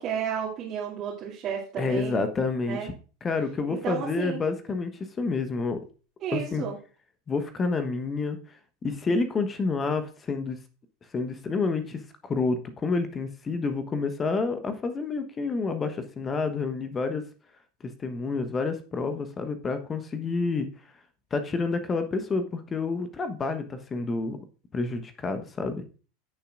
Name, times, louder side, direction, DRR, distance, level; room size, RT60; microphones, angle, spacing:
voice 1, 0.0-2.2 2.7-2.9 3.7-4.4 6.2-6.8, right 8 dB, 35° right, -6 dB, 2.5 m, -32 dB
voice 2, 1.8-2.9 3.2-4.9 5.2-5.8 6.3-6.7 7.3-8.4 8.8-10.6 11.1-17.2 18.0-20.7 21.3-24.4 24.7-25.8, left 4 dB, 20° left, 9 dB, 1.1 m, -29 dB
15.5 x 6.9 x 2.5 m, 0.36 s
figure-of-eight pair, 80°, 0 cm